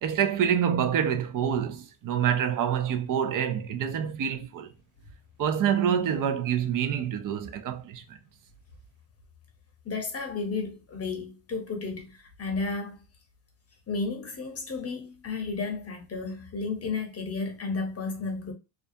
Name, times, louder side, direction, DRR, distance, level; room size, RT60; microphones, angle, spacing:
voice 1, 0.0-4.7 5.4-8.2, right 8 dB, 45° right, 0.5 m, -27 dB
voice 2, 9.8-13.0 13.9-18.5, left 4 dB, 30° left, 0.8 m, -33 dB
2.4 x 2.3 x 2.6 m
cardioid pair, 100°, 48 cm